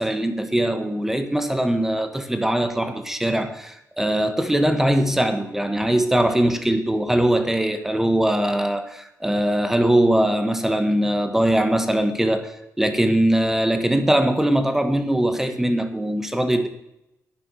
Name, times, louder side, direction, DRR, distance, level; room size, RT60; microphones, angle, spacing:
voice 1, 0.0-12.5 12.8-16.7, right 1 dB, 5° right, 1.4 m, -21 dB
11.5 x 10.0 x 6.2 m
cardioid pair, 120°, 6 cm